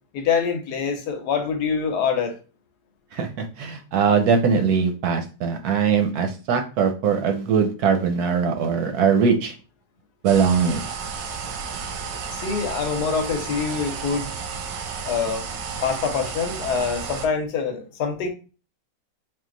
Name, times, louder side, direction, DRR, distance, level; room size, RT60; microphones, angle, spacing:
voice 1, 0.1-2.4 12.3-14.3 15.0-15.4 15.8-18.3, left 6 dB, 70° left, 1.2 m, -25 dB
voice 2, 3.6-9.5 10.2-10.8, right 6 dB, 70° right, 1.0 m, -21 dB
sound 1, 10.3-17.3, right 5 dB, 90° right, 1.3 m, -32 dB
3.8 x 2.6 x 3.7 m
omnidirectional pair, 1.9 m